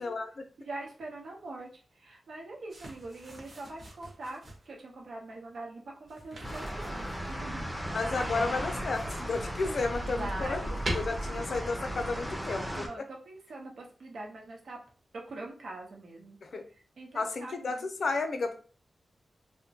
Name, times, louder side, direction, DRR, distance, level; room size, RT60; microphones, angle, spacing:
voice 1, 0.0-0.4 7.9-10.6 10.9-12.9 16.4-16.7 17.1-18.6, left 3 dB, 60° left, 6 dB, 0.4 m, -32 dB
voice 2, 0.6-7.7 8.3-8.7 10.0-10.7 12.7-14.8 15.3-16.4 16.7-17.9, right 2 dB, 75° right, -1 dB, 0.9 m, -43 dB
sound 1, 2.7-4.7 6.0-7.4 8.2-9.4 9.9-10.9, right 1 dB, 45° right, 1.0 m, -42 dB
sound 2, 6.4-12.9, equal, ahead, 0.5 m, -36 dB
3.5 x 2.1 x 2.8 m, 0.39 s
wide cardioid pair, 165°, 0 cm